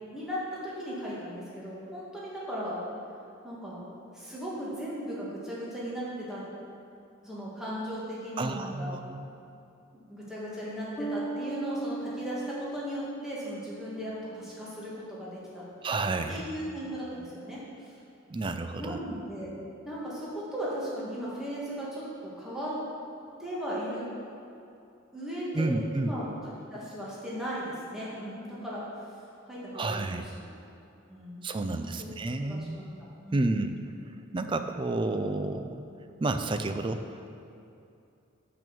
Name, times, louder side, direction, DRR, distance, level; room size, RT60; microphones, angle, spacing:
voice 1, 0.1-2.8 3.4-3.8 4.1-6.4 7.2-9.0 9.9-15.6 16.3-17.9 18.8-19.5 19.8-22.8 23.4-24.1 25.1-26.3 26.7-28.9 29.4-30.5 31.1-32.1 32.4-32.8 33.2-33.5, equal, 5° right, -8 dB, 1.7 m, -37 dB
voice 2, 8.4-9.2 15.8-16.4 18.3-19.0 25.5-26.1 29.7-30.3 31.4-32.9 33.3-33.8 34.3-35.8 36.2-37.3, right 2 dB, 25° right, 8 dB, 0.3 m, -30 dB
Bass guitar, 11.0-14.5, right 2 dB, 15° left, 0.6 m, -38 dB
6.2 x 6.1 x 6.8 m, 2.6 s
head